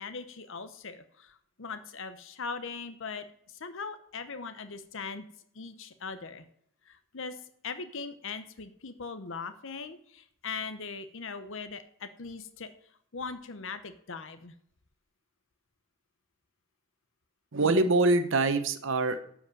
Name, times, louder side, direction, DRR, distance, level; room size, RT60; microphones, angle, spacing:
voice 1, 0.0-5.3 5.5-6.4 6.9-12.7 13.1-14.5, left 5 dB, 65° left, 10 dB, 0.8 m, -40 dB
voice 2, 17.5-19.2, right 2 dB, 65° right, 9 dB, 1.0 m, -24 dB
13.0 x 5.1 x 7.6 m, 0.67 s
head